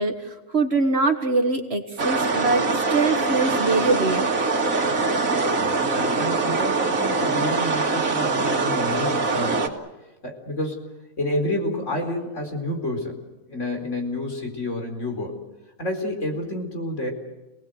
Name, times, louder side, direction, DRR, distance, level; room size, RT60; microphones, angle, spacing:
voice 1, 0.0-4.3, right 3 dB, 50° right, 6 dB, 1.9 m, -23 dB
sound 1, 2.0-9.7, right 3 dB, 75° right, 2.4 m, -23 dB
voice 2, 5.6-9.8 10.2-10.9 11.2-13.2 13.5-15.3 15.8-17.1, left 1 dB, 60° left, 2 dB, 4.7 m, -29 dB
28.5 x 19.0 x 7.9 m, 1.0 s
omnidirectional pair, 1.4 m